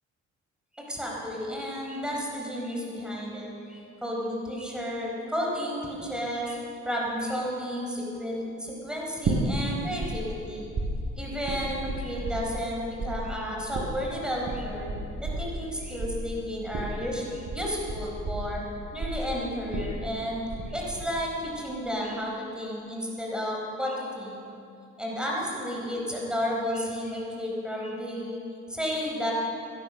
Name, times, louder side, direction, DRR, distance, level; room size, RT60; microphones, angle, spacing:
voice 1, 0.8-10.6 11.1-14.9 15.2-18.6 18.9-24.4 25.0-28.4 28.7-29.3, equal, 5° right, -3 dB, 4.6 m, -32 dB
sound 1, 9.2-10.1 10.4-12.7 13.0-20.6 20.9-21.4, right 3 dB, 55° right, 4.5 m, -32 dB
17.0 x 11.5 x 6.4 m, 2.7 s
cardioid pair, 90°, 30 cm